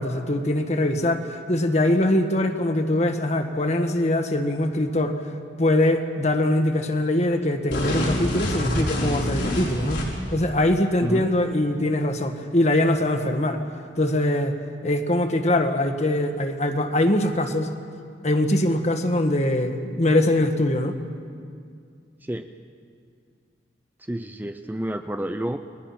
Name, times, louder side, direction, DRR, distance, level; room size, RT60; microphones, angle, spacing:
voice 1, 0.0-5.2 5.6-10.0 10.3-13.6 14.0-14.6 14.8-17.7 18.2-21.0, left 1 dB, 40° left, 6 dB, 1.6 m, -22 dB
sound 1, 7.7-10.4, left 1 dB, 90° left, 5.7 m, -26 dB
voice 2, 11.0-11.3 22.2-22.5 24.1-25.6, right 1 dB, 10° right, 7 dB, 0.6 m, -29 dB
30.0 x 21.0 x 5.9 m, 2.3 s
head